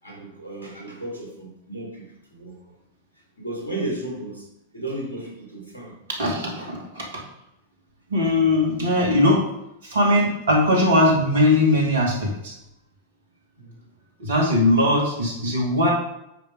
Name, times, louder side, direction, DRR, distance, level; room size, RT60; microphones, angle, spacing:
voice 1, 0.0-2.5 3.4-4.5 4.7-5.9 13.6-13.8, right 1 dB, 80° left, -3 dB, 3.2 m, -34 dB
voice 2, 6.1-7.1 8.1-9.4 9.8-12.5 14.2-15.9, left 1 dB, 65° right, 0 dB, 2.2 m, -20 dB
8.2 x 5.3 x 4.9 m, 0.85 s
figure-of-eight pair, 90°, 0 cm